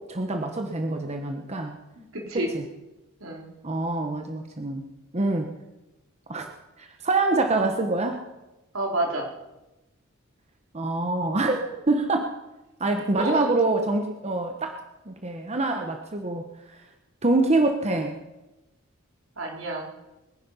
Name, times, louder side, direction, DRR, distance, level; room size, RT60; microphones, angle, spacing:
voice 1, 0.1-1.8 2.4-2.7 3.6-4.9 5.1-5.5 6.3-6.5 6.8-8.2 10.7-12.3 12.8-14.8 15.1-16.4 17.2-18.2, right 2 dB, 30° right, 4 dB, 1.1 m, -25 dB
voice 2, 2.0-2.5 3.2-3.5 8.7-9.3 13.2-13.4 19.4-19.9, right 1 dB, 75° right, 0 dB, 3.8 m, -29 dB
22.5 x 10.5 x 5.7 m, 1.0 s
head